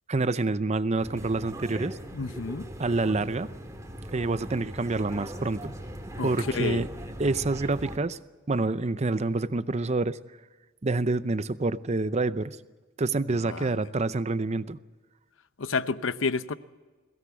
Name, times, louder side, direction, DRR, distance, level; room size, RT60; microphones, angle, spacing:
voice 1, 0.1-2.0 2.8-3.5 4.1-5.7 6.2-6.9 7.2-8.2 8.5-10.2 10.8-12.6 13.0-14.8, right 3 dB, 35° right, 0.6 m, -27 dB
sound 1, 1.0-8.0, equal, 15° right, 2.1 m, -40 dB
voice 2, 2.1-2.7 6.2-6.8 13.3-13.8 15.6-16.5, left 4 dB, 70° left, 0.8 m, -30 dB
22.5 x 16.5 x 8.1 m
head